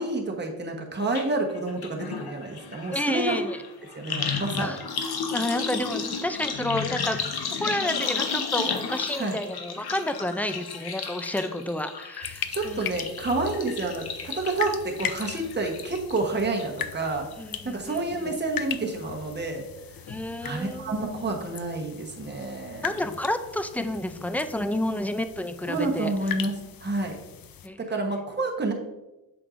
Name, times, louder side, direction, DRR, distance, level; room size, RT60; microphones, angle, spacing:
voice 1, 0.0-3.4 3.9-4.7 9.2-9.4 12.5-17.3 17.6-19.7 20.4-22.9 25.7-26.6 26.8-27.2 27.8-28.7, right 2 dB, 30° right, 1 dB, 1.1 m, -29 dB
sound 1, 1.1-1.3 1.5-16.2 16.6-17.1 17.3-17.4, left 6 dB, 85° left, 0.9 m, -33 dB
voice 2, 2.9-3.6 4.5-4.8 5.3-7.2 7.6-12.9 17.4-18.3 20.1-21.0 22.8-26.1 27.6-27.9, left 1 dB, 5° left, 9 dB, 0.3 m, -30 dB
sound 2, 12.2-27.7, left 9 dB, 65° left, 0.5 m, -39 dB
7.9 x 6.2 x 2.5 m, 0.99 s
wide cardioid pair, 130°, 37 cm